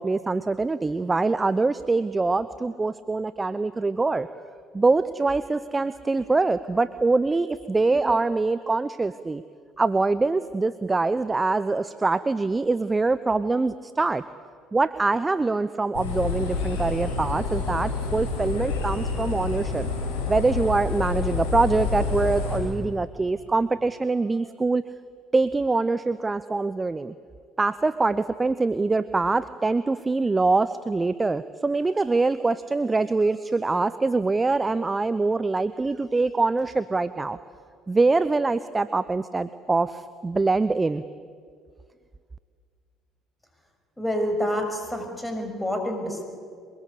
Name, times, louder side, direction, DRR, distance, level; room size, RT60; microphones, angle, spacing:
voice 1, 0.0-4.3 4.7-9.4 9.8-14.2 14.7-19.9 20.3-24.8 25.3-27.1 27.6-37.4 37.9-41.0, right 3 dB, 20° right, 14 dB, 0.8 m, -24 dB
sound 1, 15.9-22.6, left 4 dB, 80° left, 7.8 m, -28 dB
voice 2, 44.0-46.3, equal, 10° left, 4 dB, 6.5 m, -28 dB
23.5 x 22.5 x 8.5 m, 2.1 s
hypercardioid pair, 60°, 0 cm